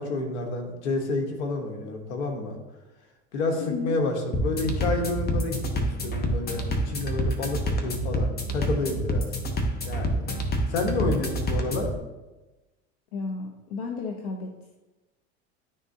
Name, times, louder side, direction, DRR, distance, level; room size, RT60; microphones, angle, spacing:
voice 1, 0.0-2.6 3.3-9.3 9.8-10.3 10.7-11.9, left 3 dB, 90° left, 3 dB, 1.3 m, -29 dB
voice 2, 3.6-4.0 13.1-14.5, left 4 dB, 70° left, 4 dB, 0.7 m, -33 dB
sound 1, 4.3-12.0, equal, 30° left, 1.0 m, -28 dB
10.5 x 3.7 x 2.7 m, 1.1 s
supercardioid pair, 105°, 33 cm